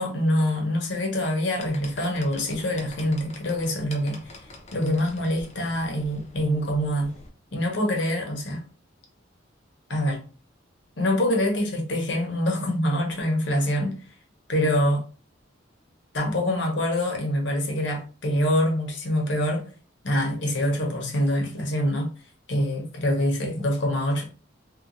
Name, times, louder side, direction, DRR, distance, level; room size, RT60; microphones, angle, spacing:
voice 1, 0.0-4.2 4.7-7.1 7.5-8.6 9.9-10.2 11.0-14.0 14.5-15.0 16.1-19.7 20.0-22.1 22.5-24.2, left 1 dB, 65° left, 0.8 m, -25 dB
sound 1, 1.6-7.3, left 2 dB, 35° left, 0.5 m, -45 dB
2.9 x 2.2 x 2.5 m
head